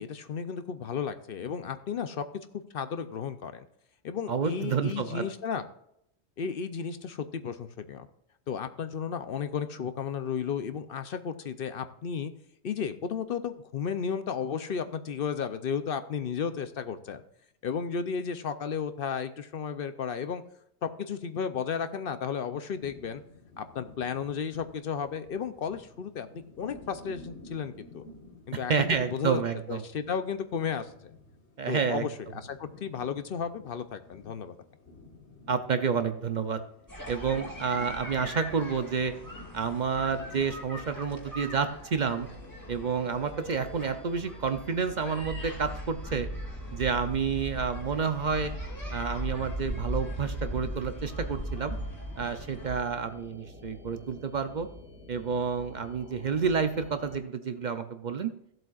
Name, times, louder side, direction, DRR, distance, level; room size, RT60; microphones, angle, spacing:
voice 1, 0.0-2.2 2.5-3.7 4.0-5.6 6.4-8.1 8.5-12.3 12.6-17.2 17.6-20.4 20.8-23.2 23.6-28.1 28.5-29.4 29.7-31.1 31.7-34.6, left 6 dB, 60° left, 10 dB, 0.8 m, -33 dB
voice 2, 4.3-5.3 28.5-29.8 31.6-32.0 35.5-36.6 37.1-39.1 39.5-42.3 42.7-46.3 46.7-48.5 48.9-51.7 52.2-54.7 55.1-58.3, right 6 dB, 50° right, 9 dB, 0.7 m, -29 dB
sound 1, 22.7-40.5, left 2 dB, 85° left, 1.9 m, -52 dB
sound 2, 36.9-52.8, equal, 15° left, 2.2 m, -39 dB
sound 3, 42.2-57.2, left 2 dB, 10° right, 2.0 m, -50 dB
16.0 x 7.7 x 2.4 m, 0.74 s
omnidirectional pair, 1.1 m